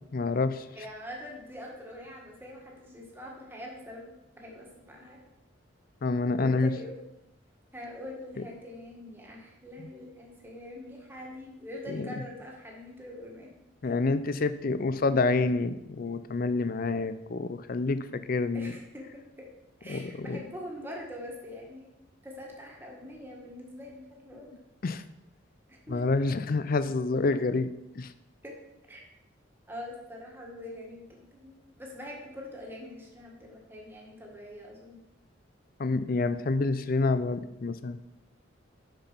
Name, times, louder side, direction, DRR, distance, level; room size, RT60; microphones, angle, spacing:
voice 1, 0.1-0.6 6.0-6.7 11.9-12.1 13.8-18.7 19.9-20.4 24.8-25.0 25.9-27.7 28.0-28.1 35.8-38.0, left 3 dB, 50° left, 13 dB, 0.5 m, -28 dB
voice 2, 0.7-5.3 6.3-6.9 7.7-13.5 13.8-13.9 18.5-19.5 19.8-21.9 22.2-24.5 25.7-26.0 28.4-28.5 28.9-29.0 29.7-35.0, left 1 dB, 10° right, -2 dB, 1.7 m, -44 dB
6.8 x 6.0 x 5.6 m, 0.90 s
head